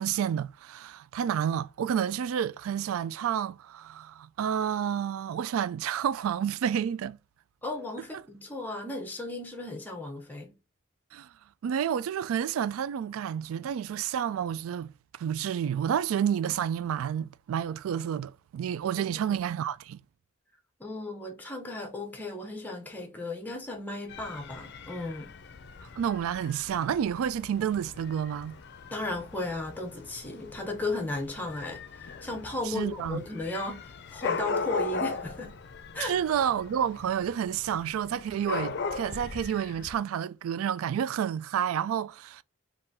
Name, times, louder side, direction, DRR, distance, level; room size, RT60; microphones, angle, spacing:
voice 1, 0.0-7.2 11.1-11.3 11.6-14.9 15.2-20.0 26.0-28.6 32.7-33.2 36.0-42.4, right 9 dB, 85° right, 0.3 m, -30 dB
voice 2, 7.6-10.6 18.9-19.4 20.8-25.3 28.9-35.5 35.9-36.2, left 2 dB, 10° left, 0.6 m, -35 dB
Dog / Cat, 24.1-40.0, left 4 dB, 50° left, 0.5 m, -39 dB
3.7 x 2.5 x 4.1 m
head